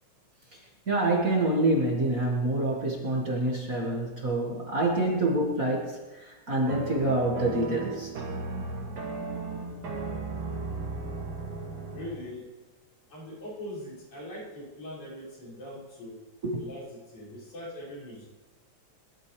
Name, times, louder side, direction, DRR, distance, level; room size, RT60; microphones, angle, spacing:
voice 1, 0.9-8.1 16.4-16.6, right 2 dB, 35° right, -2 dB, 1.8 m, -27 dB
sound 1, 6.7-12.2, right 3 dB, 85° right, 3.8 m, -35 dB
voice 2, 11.9-12.5 13.1-16.2 16.5-18.3, left 1 dB, 70° left, -8 dB, 7.5 m, -41 dB
22.0 x 12.0 x 3.3 m, 1.2 s
omnidirectional pair, 3.4 m